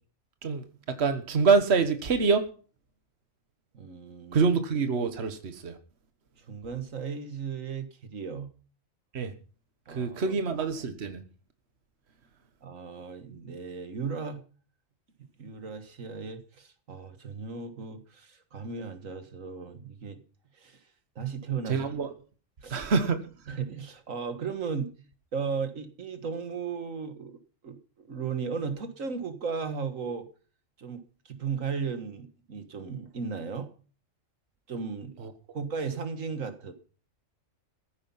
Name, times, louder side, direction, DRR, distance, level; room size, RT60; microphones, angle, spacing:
voice 1, 0.4-2.5 4.3-5.8 9.1-9.3 9.9-11.2 21.7-22.1 22.7-23.2 35.2-35.3, right 5 dB, 55° right, 1.5 m, -26 dB
voice 2, 3.7-4.5 6.4-8.5 9.9-10.4 12.6-14.4 15.4-20.2 20.6-20.8 21.2-21.8 22.6-22.9 23.5-24.9 25.3-27.4 27.6-30.3 30.8-33.7 34.7-35.1 35.5-36.7, right 5 dB, 85° right, 1.9 m, -36 dB
15.0 x 10.0 x 5.6 m
omnidirectional pair, 1.3 m